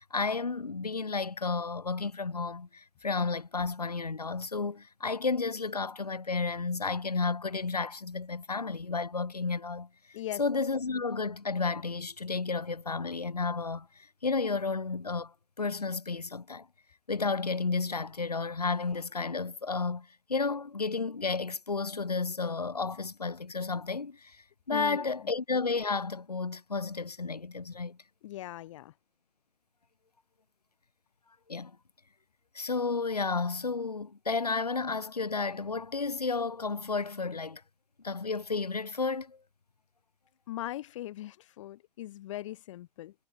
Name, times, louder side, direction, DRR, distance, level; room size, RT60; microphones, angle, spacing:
voice 1, 0.0-9.9 10.4-16.7 17.1-24.4 24.7-28.0 31.5-31.7 32.5-37.6 38.0-39.4, left 4 dB, 85° left, 0.6 m, -32 dB
voice 2, 24.7-25.3 28.2-28.9 40.5-43.1, left 14 dB, 55° left, 0.8 m, -40 dB
figure-of-eight pair, 95°, 20 cm